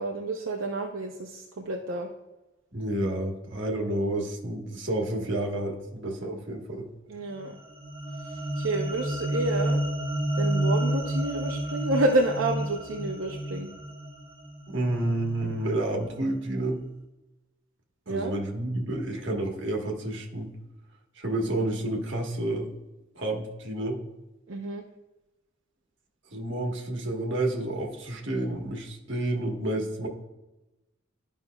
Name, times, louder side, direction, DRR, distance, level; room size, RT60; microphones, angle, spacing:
voice 1, 0.0-2.1 7.1-7.6 8.6-9.8 10.3-13.7 18.1-18.3 24.5-24.8, right 2 dB, 80° right, 1 dB, 0.6 m, -29 dB
voice 2, 2.7-6.8 14.7-16.9 18.1-20.5 21.2-22.7 23.2-24.0 26.3-30.1, right 1 dB, 65° right, 1 dB, 1.3 m, -30 dB
sound 1, 7.4-15.8, right 1 dB, 30° right, 1.0 m, -30 dB
11.5 x 5.4 x 2.3 m, 1.0 s
head